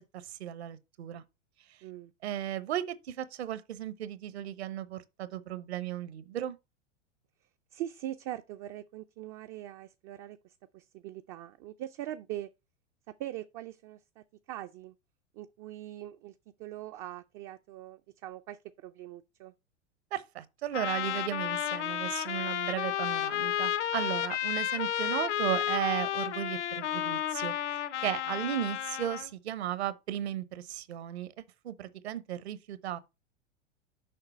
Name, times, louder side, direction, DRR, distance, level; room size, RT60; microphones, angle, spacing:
voice 1, 0.1-1.2 2.2-6.6 20.1-33.0, right 11 dB, 60° right, 0.9 m, -35 dB
voice 2, 1.8-2.1 7.7-12.5 13.2-14.9 15.3-16.3 16.6-19.5, right 13 dB, 30° right, 0.4 m, -42 dB
Trumpet, 20.7-29.3, left 11 dB, 70° left, 0.8 m, -32 dB
6.7 x 5.4 x 4.1 m
figure-of-eight pair, 95°, 37 cm